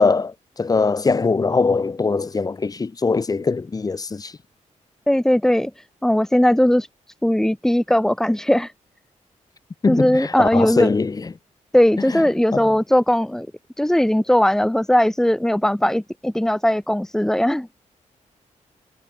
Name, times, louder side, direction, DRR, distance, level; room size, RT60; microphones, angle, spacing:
voice 1, 0.0-4.3 9.8-11.3 12.1-12.2 12.5-12.7, left 4 dB, 30° left, 5.2 m, -21 dB
voice 2, 5.1-6.9 7.2-8.7 9.9-10.9 11.7-13.5 13.8-17.7, left 1 dB, 5° left, 1.5 m, -18 dB
wide cardioid pair, 155°, 13 cm